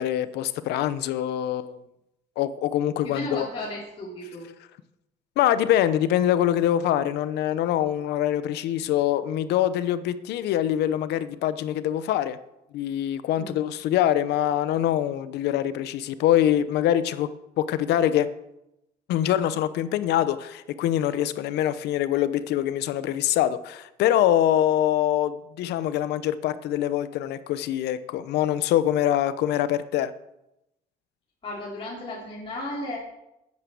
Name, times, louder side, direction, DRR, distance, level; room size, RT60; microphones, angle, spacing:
voice 1, 0.0-1.8 2.4-3.5 5.4-12.4 12.7-17.3 17.6-18.3 19.1-30.1, left 11 dB, 80° left, 14 dB, 0.9 m, -24 dB
voice 2, 3.0-4.5 13.4-13.6 31.4-33.0, left 1 dB, 35° left, -6 dB, 3.7 m, -34 dB
11.0 x 9.7 x 7.0 m, 0.88 s
cardioid pair, 110°, 17 cm